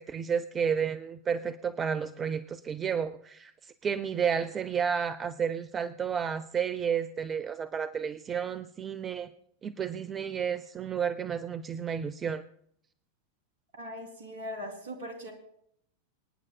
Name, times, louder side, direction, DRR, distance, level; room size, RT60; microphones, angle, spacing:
voice 1, 0.0-9.3 9.6-12.4, right 7 dB, 20° right, 13 dB, 0.5 m, -31 dB
voice 2, 13.7-15.3, equal, 55° right, 4 dB, 3.0 m, -40 dB
26.0 x 9.8 x 2.2 m, 0.69 s
figure-of-eight pair, 90°, 0 cm